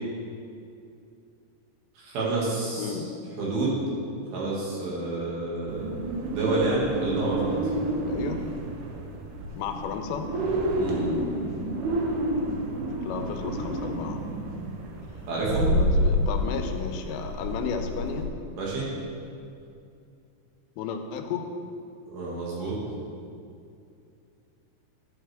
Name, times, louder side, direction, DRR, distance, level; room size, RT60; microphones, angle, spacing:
voice 1, 2.0-3.0 3.4-3.9 4.3-5.8 6.3-7.6 10.8-11.1 15.3-15.7 18.6-18.9 22.1-22.7, right 2 dB, 65° right, -6 dB, 3.7 m, -28 dB
sound 1, 5.7-18.3, equal, 80° right, 1.8 m, -29 dB
voice 2, 8.1-8.4 9.5-10.3 13.0-14.2 15.6-18.3 20.8-21.5, left 6 dB, 90° left, 5 dB, 3.0 m, -33 dB
12.0 x 8.8 x 3.5 m, 2.5 s
omnidirectional pair, 4.9 m